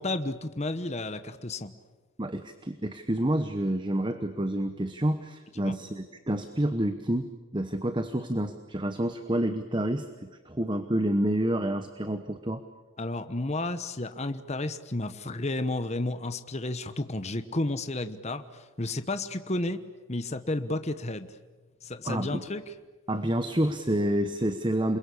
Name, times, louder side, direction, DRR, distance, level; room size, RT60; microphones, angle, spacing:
voice 1, 0.0-1.7 5.6-5.8 13.0-19.8 20.1-21.3 21.8-22.7, left 2 dB, 30° left, 10 dB, 1.0 m, -32 dB
voice 2, 2.2-7.3 7.5-12.6 22.0-22.4 23.1-25.0, right 1 dB, 20° right, 9 dB, 1.0 m, -28 dB
28.5 x 22.0 x 8.5 m, 1.3 s
head